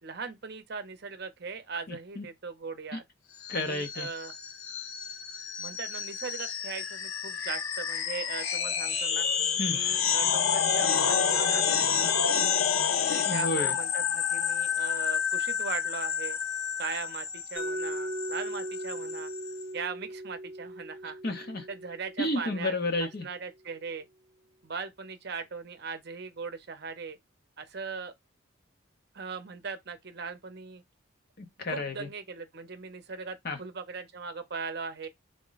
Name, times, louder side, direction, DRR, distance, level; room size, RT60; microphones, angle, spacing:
voice 1, 0.0-3.0 3.5-4.3 5.6-9.3 9.7-12.5 13.0-16.4 16.8-19.3 19.7-21.2 21.7-22.7 23.0-24.1 24.6-27.2 27.6-28.1 29.1-30.8 31.7-35.1, right 5 dB, 50° right, 0.6 m, -39 dB
voice 2, 1.9-2.2 3.5-4.1 9.6-9.8 13.3-13.7 21.2-21.7 22.2-23.3 31.4-32.1 33.4-33.6, left 2 dB, 50° left, 0.7 m, -31 dB
sound 1, 3.4-19.6, left 7 dB, 85° left, 0.6 m, -29 dB
Mallet percussion, 17.6-23.4, right 1 dB, 5° right, 1.1 m, -39 dB
3.7 x 2.2 x 3.9 m
head